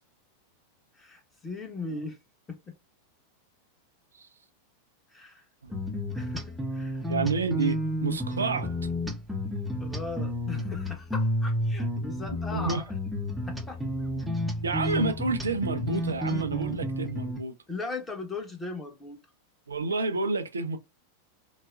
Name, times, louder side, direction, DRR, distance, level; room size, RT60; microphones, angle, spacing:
voice 1, 0.9-2.2 2.5-2.7 5.1-5.4 6.1-7.0 9.8-12.9 13.5-13.8 17.7-19.2, left 3 dB, 15° left, 1.0 m, -38 dB
sound 1, 5.7-17.4, equal, 5° right, 0.7 m, -31 dB
voice 2, 7.1-8.7 12.5-12.8 14.6-17.5 19.7-20.8, right 3 dB, 75° right, 0.5 m, -29 dB
3.9 x 2.1 x 2.4 m
figure-of-eight pair, 90°, 0 cm